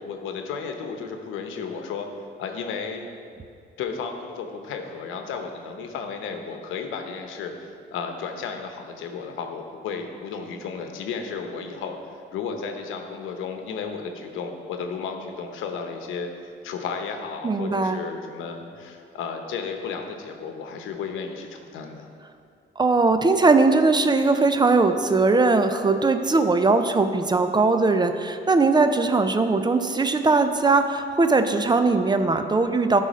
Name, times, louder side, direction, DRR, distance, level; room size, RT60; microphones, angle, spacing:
voice 1, 0.0-2.1 2.4-3.1 3.8-7.5 7.9-12.0 12.3-16.3 16.6-22.1, left 5 dB, 90° left, 5 dB, 0.9 m, -33 dB
voice 2, 17.4-18.0 22.8-33.0, right 3 dB, 20° right, 8 dB, 0.5 m, -20 dB
11.5 x 4.0 x 5.1 m, 2.4 s
cardioid pair, 90°, 20 cm